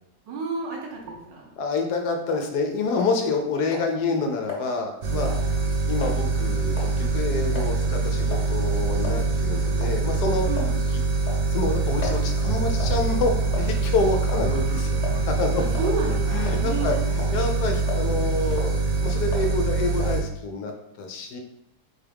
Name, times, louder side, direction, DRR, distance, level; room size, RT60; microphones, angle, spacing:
voice 1, 0.3-1.5 10.5-10.7 15.6-17.0, right 4 dB, 80° right, 0 dB, 1.6 m, -31 dB
voice 2, 1.6-5.3 5.9-10.5 11.5-15.9 16.3-21.4, left 3 dB, 70° left, 3 dB, 1.2 m, -27 dB
sound 1, 2.3-2.5 3.0-3.4 3.7-3.9 4.5-4.7 5.3-5.5 6.0-6.2 6.8-7.0 7.6-7.7 8.3-8.5 9.0-9.2 9.8-10.0 10.6-10.8 11.3-12.2 12.8-13.0 13.5-13.9 14.3-14.5 15.0-15.2 15.7-15.9 16.5-16.9 17.2-17.4 17.9-18.1 18.5-18.8 19.3-19.5 20.0-20.2, left 4 dB, 35° left, 1.3 m, -35 dB
sound 2, 5.0-20.2, right 4 dB, 55° right, 1.1 m, -24 dB
4.2 x 3.4 x 3.4 m, 0.79 s
omnidirectional pair, 1.9 m